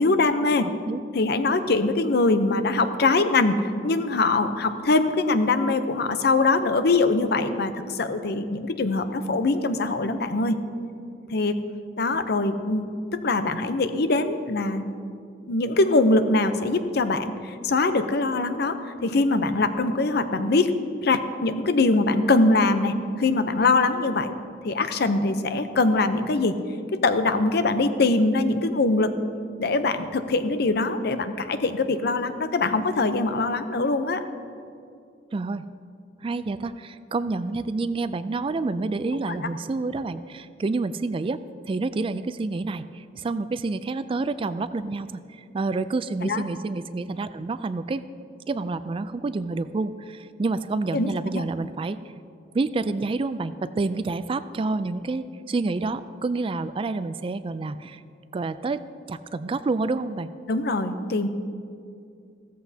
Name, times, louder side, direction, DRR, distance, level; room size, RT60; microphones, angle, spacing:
voice 1, 0.0-0.7 1.1-10.6 11.3-11.6 12.0-14.8 15.5-20.7 21.0-24.3 24.6-26.5 27.0-29.1 29.6-34.2 46.2-46.4 50.9-51.4 60.5-61.3, left 3 dB, 60° left, 9 dB, 0.7 m, -23 dB
voice 2, 0.6-1.0 35.3-35.6 36.2-41.4 41.6-48.0 48.5-52.0 52.5-58.0 58.3-60.3, right 3 dB, 30° right, 13 dB, 0.3 m, -28 dB
15.5 x 14.0 x 2.8 m, 2.4 s
head